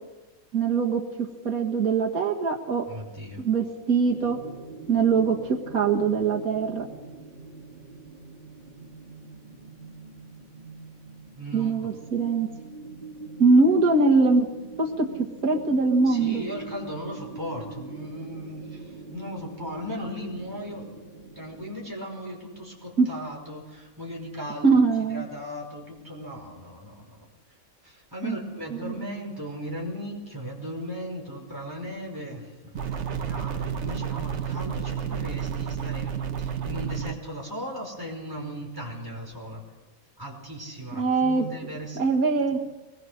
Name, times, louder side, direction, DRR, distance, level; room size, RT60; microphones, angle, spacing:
voice 1, 0.5-1.0 1.4-2.9 3.4-4.4 4.9-6.9 11.5-12.5 13.4-14.5 14.8-15.1 15.4-16.4 23.0-23.1 24.6-25.3 28.2-28.4 28.8-29.1 41.0-41.5 41.9-42.6, right 4 dB, 75° right, 1 dB, 2.1 m, -22 dB
voice 2, 2.9-3.4 11.4-11.9 16.0-21.0 21.3-27.3 27.8-39.6 40.2-42.0 42.4-42.5, equal, 15° right, -1 dB, 5.2 m, -37 dB
sound 1, 4.0-21.9, right 3 dB, 35° right, 2.8 m, -43 dB
sound 2, 32.8-37.1, right 8 dB, 55° right, 1.3 m, -31 dB
23.5 x 21.0 x 6.5 m, 1.1 s
omnidirectional pair, 1.5 m